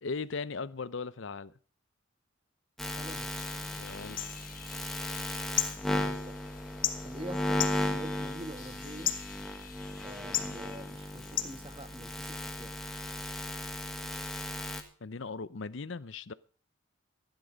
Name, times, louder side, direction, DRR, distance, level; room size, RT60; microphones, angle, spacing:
voice 1, 0.0-1.5 3.8-4.2 15.0-16.3, left 4 dB, 70° left, 0.7 m, -38 dB
sound 1, 2.8-14.8, left 1 dB, ahead, 1.5 m, -36 dB
voice 2, 2.9-3.3 5.8-6.4 7.0-9.2 10.0-12.7, right 1 dB, 25° right, 1.4 m, -45 dB
sound 2, 3.1-12.4, left 10 dB, 40° left, 1.2 m, -39 dB
15.0 x 10.5 x 5.2 m
head